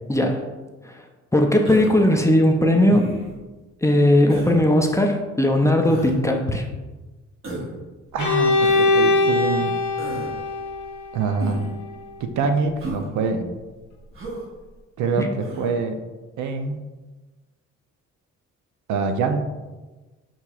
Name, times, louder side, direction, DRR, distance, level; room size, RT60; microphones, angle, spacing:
voice 1, 0.1-0.5 0.8-1.0 1.3-3.1 3.8-6.7 15.2-15.3, left 1 dB, 10° left, 3 dB, 0.4 m, -18 dB
Human voice, 1.6-2.1 2.9-3.4 4.3-4.6 5.8-6.2 7.4-7.8 8.6-8.9 10.0-10.3 11.4-11.8 12.8-13.0 14.1-14.4 15.4-15.7, right 1 dB, 45° right, 1.1 m, -33 dB
voice 2, 8.1-9.8 11.1-11.6 12.2-13.5 15.0-16.0 16.4-16.8 18.9-19.4, right 4 dB, 75° right, 6 dB, 0.6 m, -25 dB
Bowed string instrument, 8.2-12.0, left 3 dB, 75° left, 0.7 m, -22 dB
6.5 x 2.9 x 2.4 m, 1.2 s
cardioid pair, 90°, 30 cm